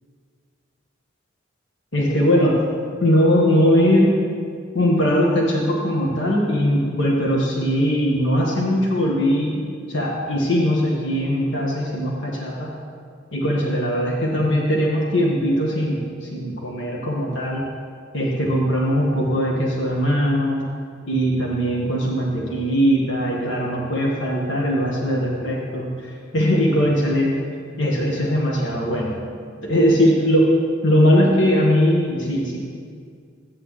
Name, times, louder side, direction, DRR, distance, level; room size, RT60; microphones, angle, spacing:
voice 1, 1.9-2.6 3.0-4.1 4.7-9.6 9.9-12.7 13.3-17.7 18.1-20.6 21.1-27.4 27.8-29.1 29.6-30.5 30.8-32.6, equal, 75° left, -3 dB, 1.6 m, -20 dB
14.5 x 9.4 x 3.3 m, 2.1 s
head